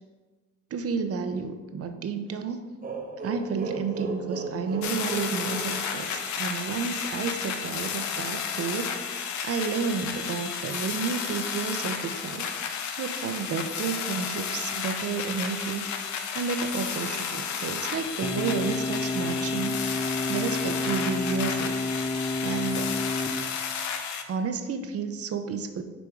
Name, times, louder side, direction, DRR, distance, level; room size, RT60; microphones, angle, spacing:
voice 1, 0.7-2.6 3.2-12.5 13.0-15.9 16.3-19.8 20.3-21.7 22.4-23.0 24.3-25.8, right 5 dB, 50° right, 8 dB, 0.6 m, -31 dB
sound 1, 2.8-6.5, right 3 dB, 30° right, 0.9 m, -36 dB
sound 2, 4.8-24.2, left 7 dB, 70° left, 0.7 m, -32 dB
sound 3, 18.2-23.3, left 2 dB, 5° left, 0.5 m, -30 dB
6.2 x 3.5 x 4.5 m, 1.3 s
cardioid pair, 90°, 30 cm